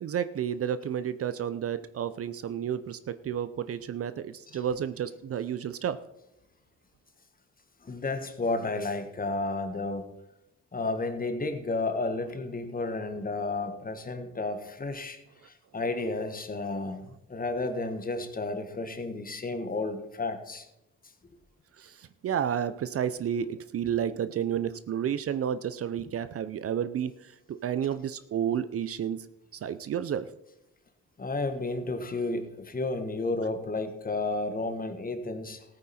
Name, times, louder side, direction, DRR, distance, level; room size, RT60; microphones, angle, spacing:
voice 1, 0.0-6.0 21.8-29.3 29.6-30.3, right 9 dB, 50° right, 13 dB, 0.6 m, -31 dB
voice 2, 7.8-10.1 10.7-15.2 15.4-20.7 31.2-35.6, left 2 dB, 30° left, 7 dB, 1.5 m, -32 dB
15.0 x 8.9 x 4.3 m, 0.88 s
cardioid pair, 90°, 30 cm